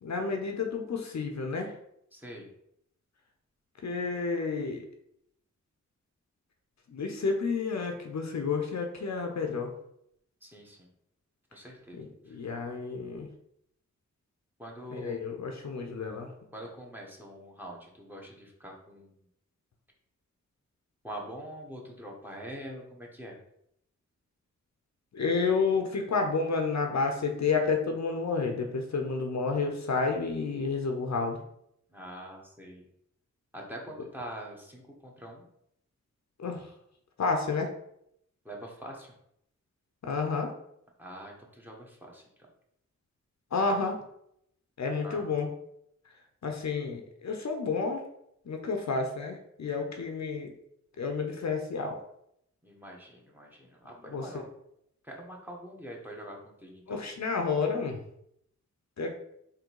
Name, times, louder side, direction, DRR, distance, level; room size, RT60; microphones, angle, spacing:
voice 1, 0.0-1.7 3.8-4.8 6.9-9.7 12.0-13.3 14.9-16.3 25.1-31.4 36.4-36.7 37.2-37.7 40.0-40.5 43.5-44.0 44.8-45.5 46.4-48.0 48.5-50.5 51.0-52.0 54.1-54.3 56.9-58.0 59.0-59.1, left 4 dB, 60° left, 3 dB, 0.7 m, -30 dB
voice 2, 2.1-2.5 10.4-10.9 11.5-12.4 14.6-15.2 16.5-19.2 21.0-23.3 31.9-32.8 33.5-35.5 38.4-39.1 41.0-42.3 45.0-45.4 49.7-50.1 52.6-54.5 55.0-57.1, equal, 5° right, 0 dB, 1.4 m, -44 dB
3.8 x 3.0 x 4.6 m, 0.75 s
cardioid pair, 50°, 30 cm